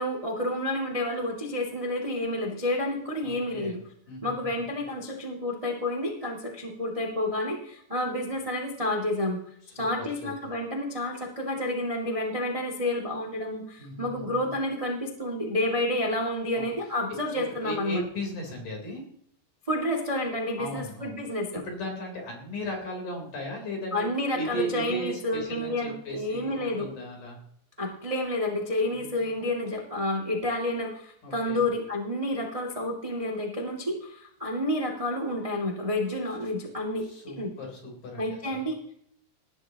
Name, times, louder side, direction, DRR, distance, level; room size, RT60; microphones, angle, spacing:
voice 1, 0.0-3.8 4.2-9.4 9.7-18.0 19.7-21.6 23.9-26.9 27.8-37.1 37.4-37.5 38.2-38.8, left 1 dB, 25° right, 1 dB, 0.6 m, -30 dB
voice 2, 3.2-3.8 4.1-4.5 9.8-10.3 13.8-14.5 16.6-16.7 17.4-19.1 20.6-21.2 21.5-24.1 24.3-27.4 28.9-29.5 31.2-31.6 37.0-38.6, equal, 45° left, 0 dB, 5.2 m, -37 dB
20.5 x 11.5 x 3.0 m, 0.67 s
omnidirectional pair, 5.2 m